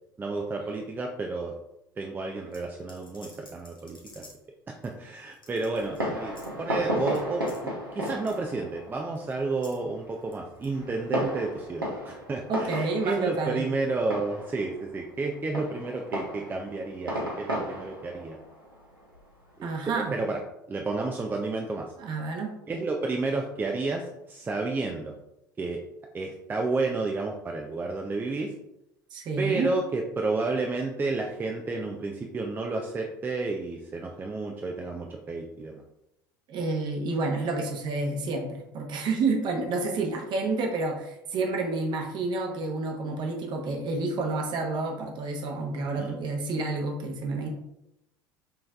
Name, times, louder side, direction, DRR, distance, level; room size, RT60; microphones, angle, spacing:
voice 1, 0.2-1.5 2.0-4.3 4.7-7.5 7.9-18.4 19.6-20.4 20.7-21.9 22.7-25.2 25.6-25.8 26.1-28.5 29.4-35.8 46.0-46.2, right 3 dB, 20° right, 1 dB, 0.5 m, -31 dB
sound 1, 2.5-4.5 4.8-4.9 5.3-6.0 6.3-6.5 7.1-7.2 7.5-7.6 8.0-8.4 9.2-9.8 10.1-10.8, left 2 dB, 85° left, 0.9 m, -52 dB
Fireworks, 5.8-19.9, equal, 90° right, 1.0 m, -35 dB
voice 2, 12.5-13.7 19.6-20.2 22.0-22.6 29.1-29.7 36.5-47.5, right 3 dB, 40° right, 2 dB, 1.0 m, -29 dB
6.2 x 3.2 x 2.4 m, 0.86 s
figure-of-eight pair, 70°, 11 cm